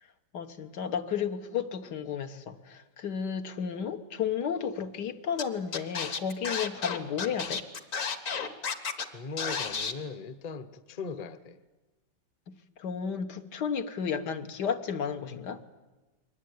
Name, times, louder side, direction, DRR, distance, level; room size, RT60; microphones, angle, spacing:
voice 1, 0.3-7.6 12.8-15.6, left 7 dB, 75° left, 1.8 m, -33 dB
Scratching (performance technique), 5.4-5.5 5.7-9.0 9.4-9.9, left 5 dB, 50° left, 1.6 m, -32 dB
voice 2, 9.1-11.6, left 4 dB, 30° left, 0.8 m, -39 dB
23.0 x 19.5 x 9.5 m
omnidirectional pair, 1.9 m